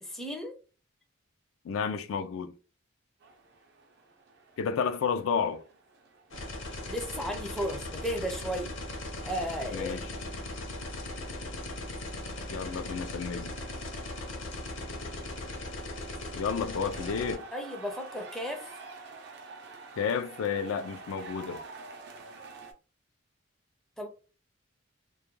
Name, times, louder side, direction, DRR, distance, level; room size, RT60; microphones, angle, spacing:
voice 1, 0.0-0.5 6.9-8.7 9.2-10.0 17.5-18.7 24.0-24.1, equal, ahead, 0.4 m, -34 dB
voice 2, 1.6-2.5 4.6-5.6 9.7-10.0 12.5-13.5 16.3-17.4 20.0-21.6, left 6 dB, 80° left, 0.3 m, -31 dB
sound 1, 3.2-22.7, right 3 dB, 55° right, 0.5 m, -50 dB
sound 2, 6.3-17.4, left 2 dB, 60° left, 0.7 m, -38 dB
2.3 x 2.1 x 3.0 m
head